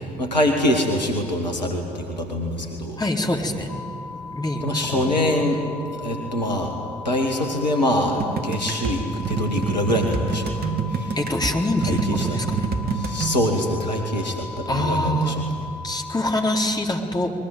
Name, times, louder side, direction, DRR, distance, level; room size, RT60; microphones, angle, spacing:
voice 1, 0.2-3.0 4.6-5.6 5.9-6.7 7.0-10.5 10.9-11.1 11.9-12.0 12.3-12.4 12.9-15.3, left 1 dB, 85° left, 2 dB, 1.9 m, -24 dB
voice 2, 3.0-3.7 4.3-5.1 11.2-12.7 14.7-15.4 15.8-17.3, left 1 dB, 20° left, 1 dB, 4.0 m, -24 dB
sound 1, 3.7-16.7, left 4 dB, 70° left, 2.4 m, -38 dB
sound 2, 8.2-13.4, right 5 dB, 45° right, 2.2 m, -27 dB
29.0 x 21.5 x 9.3 m, 2.6 s
figure-of-eight pair, 45°, 21 cm